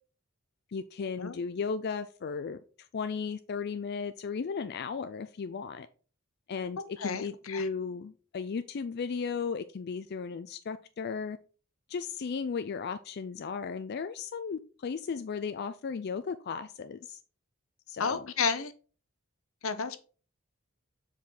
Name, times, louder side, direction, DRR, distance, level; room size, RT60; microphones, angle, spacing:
voice 1, 0.7-2.6 2.9-5.9 6.5-11.4 11.9-17.2 17.9-18.3, left 5 dB, 50° left, 0.4 m, -35 dB
voice 2, 7.0-7.7 18.0-18.7 19.6-20.0, left 5 dB, 85° left, 0.8 m, -31 dB
7.2 x 4.4 x 3.9 m
head